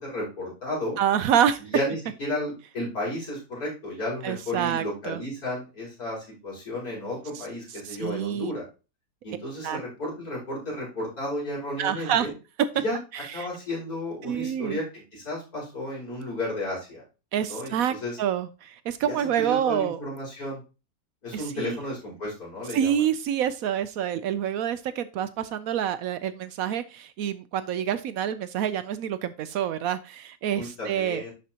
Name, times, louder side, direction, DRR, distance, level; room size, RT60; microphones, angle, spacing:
voice 1, 0.0-1.0 1.6-8.6 9.2-12.3 12.8-13.0 13.3-17.0 17.5-18.2 19.1-20.6 21.2-23.0 30.5-31.3, left 1 dB, 70° left, -5 dB, 5.0 m, -33 dB
voice 2, 1.0-1.6 4.2-5.2 7.9-8.5 9.6-9.8 11.8-12.3 13.4-13.5 14.2-14.8 17.3-20.0 21.3-21.8 22.7-31.2, right 9 dB, 70° right, 12 dB, 0.9 m, -27 dB
11.0 x 4.4 x 2.8 m, 0.31 s
omnidirectional pair, 1.6 m